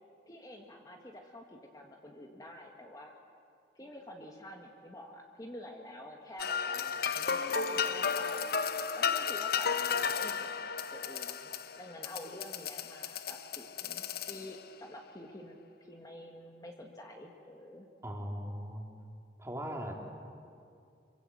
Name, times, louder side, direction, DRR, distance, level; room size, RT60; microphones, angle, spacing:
voice 1, 0.3-3.2 3.8-8.5 8.9-17.9, left 1 dB, 20° left, 1 dB, 1.7 m, -48 dB
sound 1, 6.4-14.7, left 6 dB, 55° left, 0.9 m, -34 dB
voice 2, 18.0-18.8 19.4-20.0, equal, 15° right, 0 dB, 3.1 m, -39 dB
26.0 x 24.0 x 7.8 m, 2.5 s
head